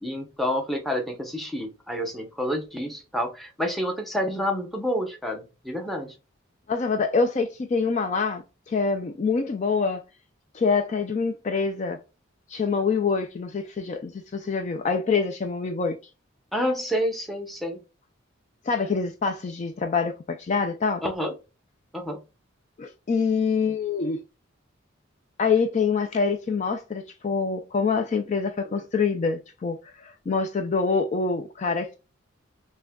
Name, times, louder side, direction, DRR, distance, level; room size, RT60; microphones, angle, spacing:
voice 1, 0.0-6.1 16.5-17.8 21.0-21.3 21.9-22.2, equal, ahead, 0.7 m, -29 dB
voice 2, 6.7-10.0 10.5-12.0 12.5-16.0 18.7-21.0 22.8-24.2 25.4-32.0, left 5 dB, 35° left, 0.3 m, -25 dB
5.9 x 2.2 x 2.2 m
head